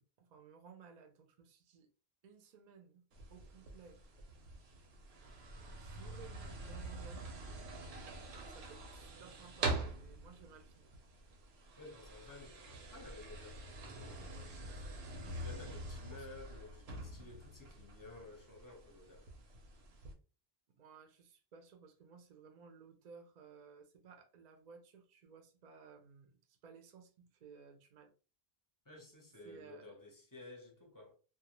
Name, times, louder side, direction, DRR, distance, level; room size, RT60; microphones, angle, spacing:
voice 1, 0.0-1.9 2.2-3.0 3.3-4.0 5.7-7.4 8.3-10.9 16.1-16.3 20.8-28.1 29.4-29.9, right 5 dB, 55° right, 0.5 m, -58 dB
sound 1, 3.1-20.1, right 2 dB, 75° right, 0.9 m, -45 dB
voice 2, 11.8-19.3 28.8-31.1, left 2 dB, 20° left, 0.7 m, -54 dB
2.3 x 2.1 x 2.9 m
omnidirectional pair, 1.1 m